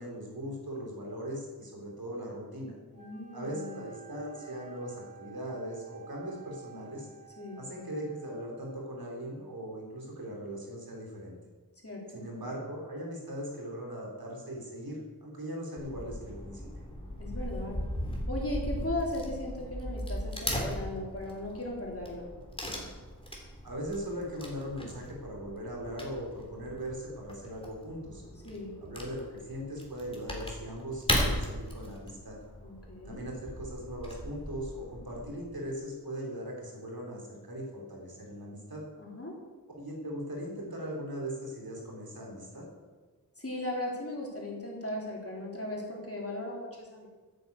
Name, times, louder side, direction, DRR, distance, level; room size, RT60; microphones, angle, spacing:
voice 1, 0.0-2.8 3.3-7.1 7.6-11.4 12.1-16.7 23.6-28.2 28.8-32.4 33.1-38.8 39.7-42.7, equal, 80° right, -1 dB, 3.9 m, -39 dB
Wind instrument woodwind instrument, 2.9-8.8, right 7 dB, 20° right, 2.7 m, -53 dB
voice 2, 3.0-3.8 7.4-7.6 11.8-12.2 17.2-17.8 18.3-22.3 28.4-28.7 32.6-33.2 39.0-39.3 43.4-47.1, left 1 dB, 40° left, -3 dB, 3.9 m, -37 dB
Wood / Tearing, 15.8-35.4, equal, 15° left, 3.1 m, -37 dB
9.9 x 9.3 x 8.3 m, 1.4 s
wide cardioid pair, 70°, 36 cm